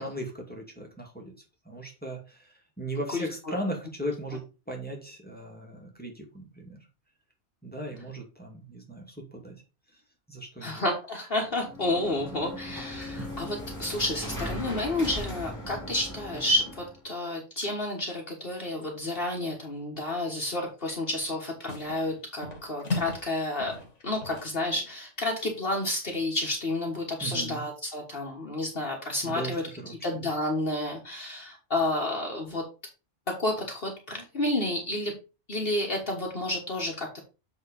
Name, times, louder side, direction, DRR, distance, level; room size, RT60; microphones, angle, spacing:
voice 1, 0.0-1.3 1.7-4.4 4.7-6.8 7.6-9.5 10.3-10.8 27.2-27.6 29.2-29.9, right 1 dB, 10° left, 0 dB, 2.1 m, -37 dB
voice 2, 3.1-3.6 10.6-23.7 24.0-29.6 30.0-32.7 33.3-35.1 35.5-37.2, left 1 dB, 55° left, 0 dB, 1.6 m, -30 dB
sound 1, 11.5-17.0, left 1 dB, 15° right, 2.5 m, -38 dB
sound 2, 21.1-21.4 21.7-22.1 22.4-23.3 23.6-25.0, left 3 dB, 90° left, 2.0 m, -36 dB
8.1 x 3.7 x 5.1 m, 0.31 s
omnidirectional pair, 1.2 m